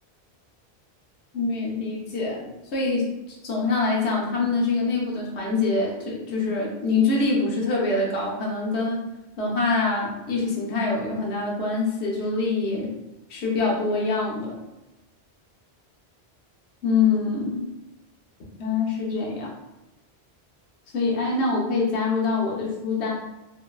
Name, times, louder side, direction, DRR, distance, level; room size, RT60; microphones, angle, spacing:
voice 1, 1.3-2.5 2.7-3.1 3.4-9.0 9.4-12.9 13.3-14.6 16.8-17.6 18.6-19.5 20.9-23.1, left 3 dB, 80° left, -3 dB, 1.0 m, -24 dB
3.1 x 2.2 x 2.2 m, 1.0 s
omnidirectional pair, 1.1 m